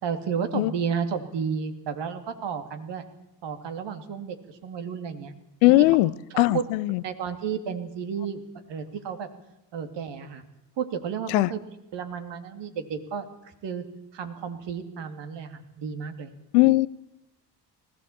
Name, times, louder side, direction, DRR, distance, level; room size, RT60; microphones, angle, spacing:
voice 1, 0.0-3.0 3.4-5.3 5.8-5.9 6.3-6.6 7.0-8.4 8.7-9.3 9.7-10.4 10.8-11.6 11.9-13.2 13.6-13.8 14.1-16.3, right 7 dB, 60° right, 2.7 m, -32 dB
voice 2, 5.6-7.0 11.3-11.5 16.5-16.9, left 20 dB, 80° left, 0.8 m, -20 dB
20.0 x 16.0 x 8.6 m
hypercardioid pair, 55°, 48 cm